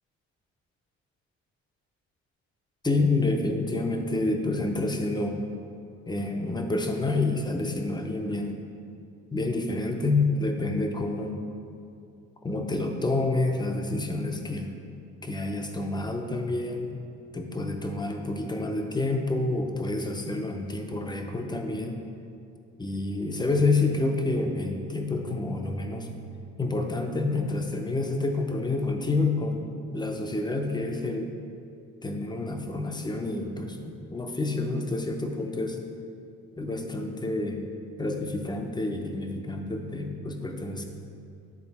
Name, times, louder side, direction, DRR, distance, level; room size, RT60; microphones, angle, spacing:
voice 1, 2.8-5.4 6.1-8.6 9.3-11.3 12.4-14.7 15.2-16.9 17.3-22.0 22.8-26.1 26.6-29.6 29.9-31.3 32.0-35.8 36.6-37.6 38.0-40.8, left 2 dB, 15° left, 3 dB, 0.7 m, -28 dB
9.9 x 3.7 x 4.2 m, 2.6 s
cardioid pair, 90°, 30 cm